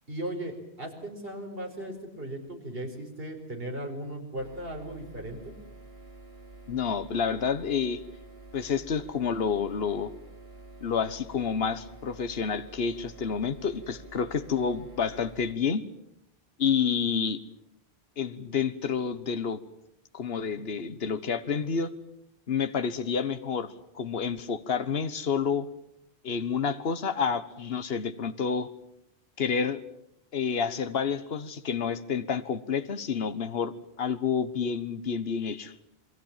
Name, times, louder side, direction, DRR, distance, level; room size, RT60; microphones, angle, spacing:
voice 1, 0.1-5.4, right 1 dB, 65° right, 2 dB, 5.1 m, -37 dB
sound 1, 4.4-15.5, right 2 dB, 85° right, 4.4 m, -49 dB
voice 2, 6.7-8.0 8.5-10.1 10.8-15.8 16.6-17.4 18.2-19.6 20.1-21.9 22.5-25.7 26.2-28.7 29.4-29.8 30.3-33.7 34.0-35.7, left 6 dB, 70° left, 12 dB, 1.5 m, -29 dB
28.0 x 22.0 x 7.4 m, 0.76 s
omnidirectional pair, 1.1 m